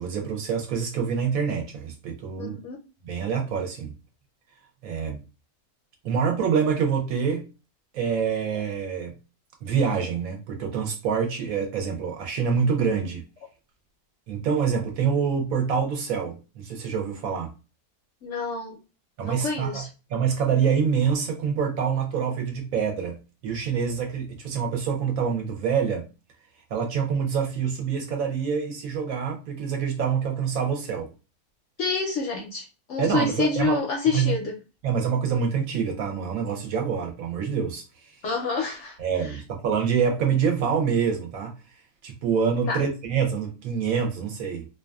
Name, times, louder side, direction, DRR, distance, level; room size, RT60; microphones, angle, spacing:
voice 1, 0.0-2.6 3.0-3.9 4.8-5.2 6.0-7.5 7.9-9.1 9.6-13.2 14.3-17.5 19.2-19.8 20.1-26.1 26.7-31.1 33.0-33.8 34.1-34.4 34.8-38.1 39.0-41.6 42.0-44.7, right 6 dB, 70° right, 1.0 m, -26 dB
voice 2, 2.3-2.8 18.2-18.8 19.2-19.9 31.8-34.5 38.2-39.4 42.7-42.9, left 4 dB, 65° left, 0.7 m, -28 dB
2.5 x 2.3 x 2.2 m
omnidirectional pair, 1.7 m